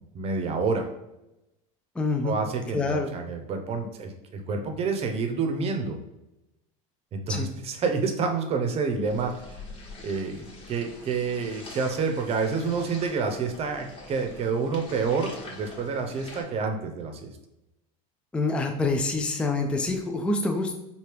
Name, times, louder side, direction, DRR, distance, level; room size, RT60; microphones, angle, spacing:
voice 1, 0.1-0.9 2.2-6.0 7.1-9.6 10.0-17.3, right 4 dB, 35° right, 5 dB, 0.7 m, -28 dB
voice 2, 2.0-2.3 2.7-3.1 7.3-7.5 18.3-20.7, left 3 dB, 5° left, 3 dB, 0.4 m, -26 dB
sound 1, 9.0-16.4, left 2 dB, 30° left, 1.2 m, -45 dB
4.5 x 2.8 x 3.3 m, 0.90 s
supercardioid pair, 115°, 18 cm